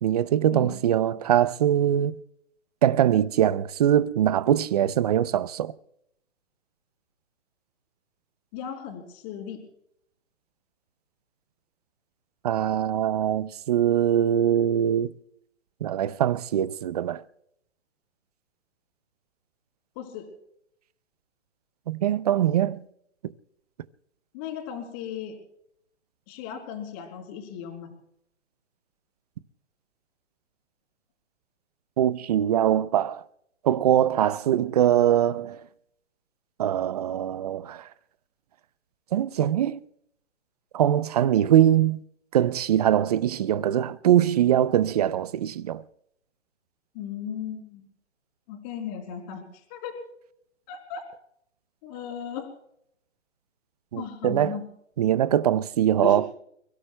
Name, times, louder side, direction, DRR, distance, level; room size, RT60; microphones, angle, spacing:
voice 1, 0.0-2.2 2.8-5.7 12.4-15.1 15.8-17.2 21.9-22.8 32.0-33.2 33.6-35.6 36.6-37.9 39.1-39.8 40.7-42.0 42.3-45.8 53.9-54.6 55.0-56.3, right 10 dB, 35° right, 0.5 m, -22 dB
voice 2, 8.5-9.6 20.0-20.3 24.3-25.4 26.3-27.9 46.9-47.8 48.5-49.9 50.7-51.0 51.8-52.5 54.0-54.6 56.0-56.2, left 8 dB, 30° left, 4.0 m, -36 dB
30.0 x 16.5 x 2.2 m
hypercardioid pair, 140°, 37 cm